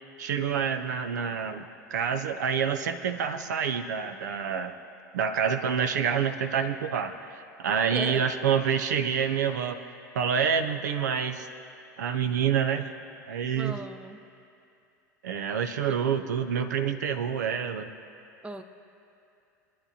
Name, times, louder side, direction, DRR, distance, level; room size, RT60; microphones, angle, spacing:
voice 1, 0.2-4.7 5.1-7.2 7.6-9.8 10.1-11.5 12.0-12.9 13.3-13.8 15.2-17.9, right 7 dB, 70° right, 8 dB, 0.6 m, -27 dB
voice 2, 7.9-8.2 13.6-14.2 18.4-18.6, right 2 dB, 10° right, 8 dB, 0.7 m, -36 dB
24.5 x 10.0 x 2.8 m, 2.6 s
hypercardioid pair, 85°, 10 cm